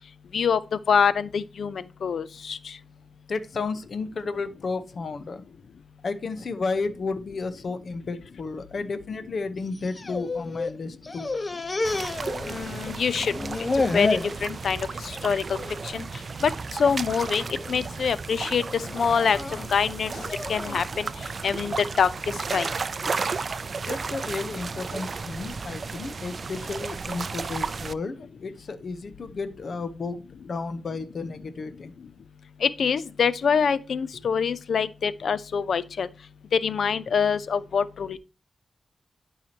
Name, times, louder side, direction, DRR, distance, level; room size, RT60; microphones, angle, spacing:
voice 1, 0.9-2.7 12.5-13.3 13.7-15.4 15.8-16.0 16.4-16.5 16.8-19.4 19.7-20.1 20.5-21.1 21.4-22.1 22.5-22.7 32.6-36.1 36.5-38.2, left 6 dB, 80° left, 0.6 m, -25 dB
voice 2, 3.3-5.4 6.0-11.3 12.3-12.4 23.9-31.9, left 4 dB, 60° left, 0.9 m, -33 dB
sound 1, 9.7-10.8 11.0-12.9 13.2-14.4 14.8-15.2 15.5-15.7 16.5-16.9 17.5-17.9 18.7-20.9, left 3 dB, 35° left, 0.8 m, -30 dB
sound 2, 11.8-27.9, right 4 dB, 55° right, 0.4 m, -34 dB
11.5 x 4.8 x 2.9 m
cardioid pair, 80°, 0 cm